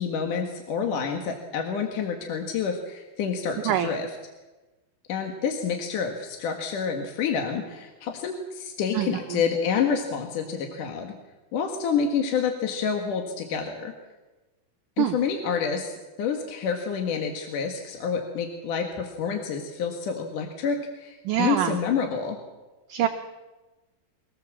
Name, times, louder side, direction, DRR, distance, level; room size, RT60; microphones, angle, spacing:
voice 1, 0.0-4.1 5.1-11.1 11.5-13.9 15.0-15.9 16.2-22.4, left 6 dB, 60° left, 3 dB, 2.9 m, -28 dB
voice 2, 8.9-9.4 15.0-15.2 21.3-21.8 22.9-23.1, right 11 dB, 70° right, 6 dB, 2.1 m, -25 dB
24.0 x 18.0 x 7.4 m, 1.2 s
omnidirectional pair, 4.6 m